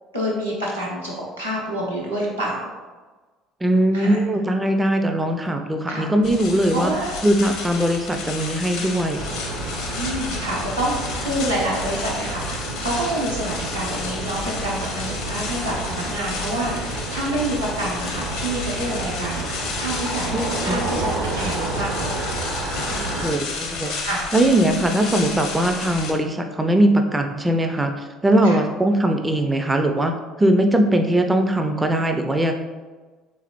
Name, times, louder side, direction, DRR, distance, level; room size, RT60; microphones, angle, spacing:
voice 1, 0.1-2.7 3.9-4.2 5.9-6.1 6.7-7.2 9.9-22.2 22.9-23.3 24.0-24.2 28.4-28.6, right 1 dB, 90° right, -7 dB, 0.8 m, -28 dB
voice 2, 3.6-6.9 7.2-9.3 20.3-20.8 23.2-24.0 24.3-27.9 28.2-32.5, right 1 dB, 15° right, 5 dB, 0.3 m, -20 dB
sound 1, 6.2-26.1, left 4 dB, 60° left, 0.6 m, -32 dB
sound 2, 9.1-23.3, right 2 dB, 60° right, 0.6 m, -30 dB
3.6 x 3.2 x 3.0 m, 1.3 s
figure-of-eight pair, 60°, 0 cm